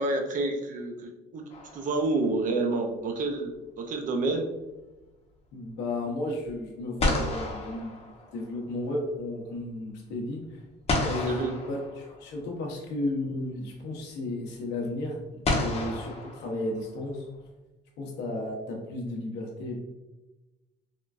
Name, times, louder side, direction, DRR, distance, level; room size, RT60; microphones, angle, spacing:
voice 1, 0.0-1.4 1.7-4.5 11.3-11.5, right 2 dB, 50° right, 3 dB, 0.5 m, -29 dB
sound 1, 1.5-2.4 6.5-6.6 7.0-8.7 10.9-12.5 13.8-13.9 15.4-17.1, left 2 dB, 40° left, 0.7 m, -31 dB
voice 2, 5.5-10.6 11.0-17.3 18.0-19.8, left 1 dB, 85° left, -1 dB, 0.8 m, -33 dB
3.7 x 2.2 x 2.4 m, 1.0 s
cardioid pair, 110°, 17 cm